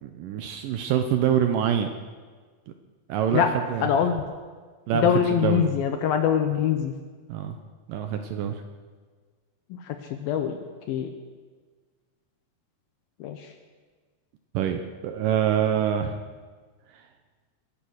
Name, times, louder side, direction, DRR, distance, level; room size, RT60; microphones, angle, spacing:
voice 1, 0.0-1.9 3.1-3.9 4.9-5.6 7.3-7.6 7.9-8.6 14.5-16.2 16.9-17.0, right 9 dB, 75° right, 7 dB, 2.1 m, -25 dB
voice 2, 3.8-4.2 5.0-6.9 9.7-9.8 10.1-10.6 10.9-11.1 13.2-13.4, left 8 dB, 75° left, 6 dB, 2.5 m, -23 dB
22.5 x 8.6 x 6.4 m, 1.5 s
omnidirectional pair, 4.7 m